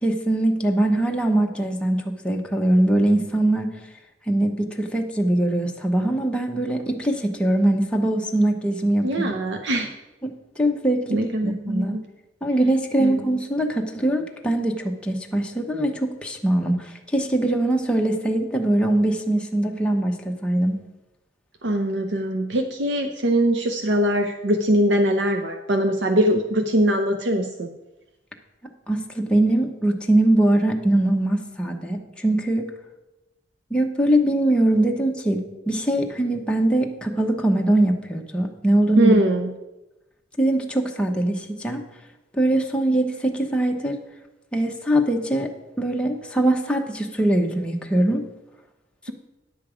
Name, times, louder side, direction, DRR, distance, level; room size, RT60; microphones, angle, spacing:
voice 1, 0.0-3.7 4.3-9.4 10.2-12.0 12.4-20.8 28.9-32.7 33.7-39.2 40.4-41.8 42.3-44.0 44.5-48.3, right 1 dB, 5° left, 1 dB, 0.9 m, -22 dB
voice 2, 9.0-9.9 11.1-12.0 13.0-13.2 21.6-27.7 39.0-39.5, right 1 dB, 70° right, 5 dB, 0.7 m, -22 dB
9.9 x 7.5 x 5.0 m, 1.0 s
head